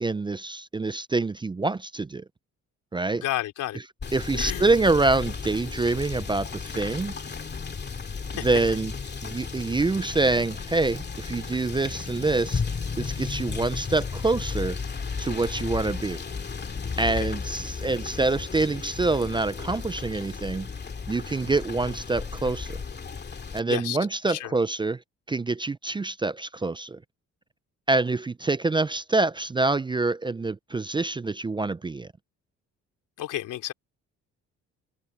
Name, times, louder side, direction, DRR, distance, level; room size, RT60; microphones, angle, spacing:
voice 1, 0.0-2.2 2.9-3.2 4.1-7.1 8.4-8.9 9.2-14.8 15.2-16.2 17.0-20.7 21.1-22.8 23.5-25.0 25.3-27.0 27.9-32.1, right 3 dB, 15° right, 0.4 m, -26 dB
voice 2, 3.2-3.8 4.3-4.7 8.4-8.5 17.2-17.3 23.7-24.0 24.2-24.5 33.2-33.7, left 14 dB, 85° left, 3.9 m, -31 dB
Rain / Motor vehicle (road), 4.0-23.6, left 5 dB, 35° left, 2.3 m, -34 dB
cardioid pair, 90°, 30 cm